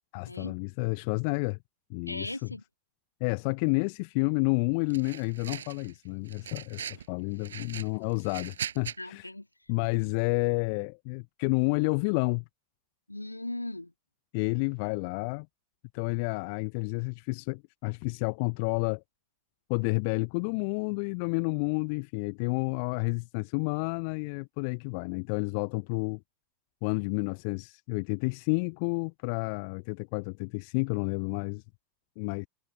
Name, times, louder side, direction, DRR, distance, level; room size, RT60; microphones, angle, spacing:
voice 1, 0.1-1.6 1.9-2.3 3.2-9.3 9.7-12.4 14.3-15.5 15.9-19.0 19.7-26.2 26.8-31.6 32.2-32.5, left 34 dB, 45° left, 1.2 m, -30 dB
voice 2, 2.1-2.6 9.0-9.5 13.1-13.9, left 2 dB, 85° left, 2.9 m, -38 dB
sound 1, 4.9-5.9 6.3-7.1 7.4-9.0, right 8 dB, 65° right, 6.3 m, -40 dB
figure-of-eight pair, 90°, 0 cm